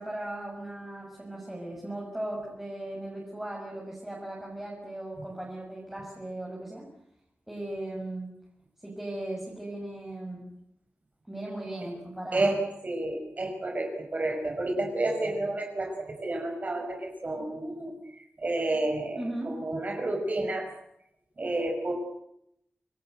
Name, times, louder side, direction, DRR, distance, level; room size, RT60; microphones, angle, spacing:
voice 1, 0.0-6.9 7.5-8.3 8.8-10.5 11.3-12.5 19.2-19.6, right 1 dB, 10° right, -3 dB, 6.7 m, -37 dB
voice 2, 12.3-18.0 18.4-20.7 21.4-21.9, right 2 dB, 40° right, 3 dB, 5.9 m, -30 dB
28.5 x 20.0 x 7.9 m, 0.76 s
wide cardioid pair, 125°, 4 cm